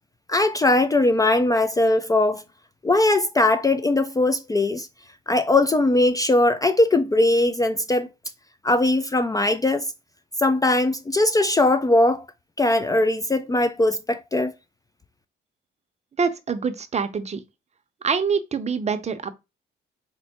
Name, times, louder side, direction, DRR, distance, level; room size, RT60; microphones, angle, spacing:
voice 1, 0.3-2.4 2.8-4.9 5.3-8.1 8.6-9.9 10.4-12.2 12.6-14.5, left 2 dB, 20° left, 0.4 m, -20 dB
voice 2, 16.2-17.4 18.0-19.3, right 5 dB, 35° right, 0.6 m, -25 dB
4.4 x 2.1 x 4.1 m
cardioid pair, 90°, 20 cm